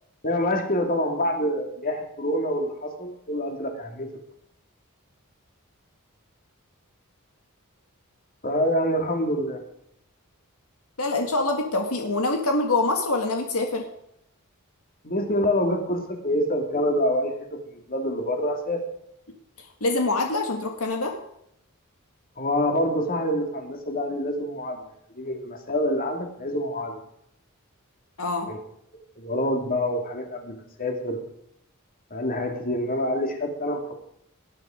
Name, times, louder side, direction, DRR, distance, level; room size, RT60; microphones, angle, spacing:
voice 1, 0.2-4.1 8.4-9.6 15.0-17.3 17.7-18.8 22.4-24.8 25.1-27.0 28.5-28.6 29.2-31.2 32.1-33.9, left 1 dB, 40° left, 3 dB, 2.8 m, -26 dB
voice 2, 11.0-13.9 19.6-21.2 28.2-28.5, left 2 dB, 75° left, 3 dB, 1.9 m, -25 dB
19.0 x 11.0 x 5.1 m, 0.74 s
head